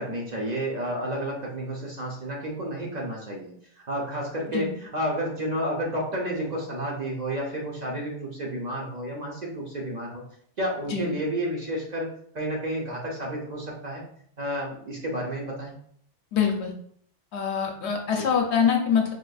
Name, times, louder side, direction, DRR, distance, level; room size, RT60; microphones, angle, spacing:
voice 1, 0.0-3.5 3.9-10.2 10.6-12.1 12.3-14.0 14.4-15.7 18.1-18.3, equal, 45° right, -2 dB, 0.7 m, -31 dB
voice 2, 16.3-16.7 17.3-19.1, left 7 dB, 75° left, 3 dB, 0.9 m, -24 dB
4.5 x 2.4 x 2.3 m, 0.63 s
omnidirectional pair, 1.2 m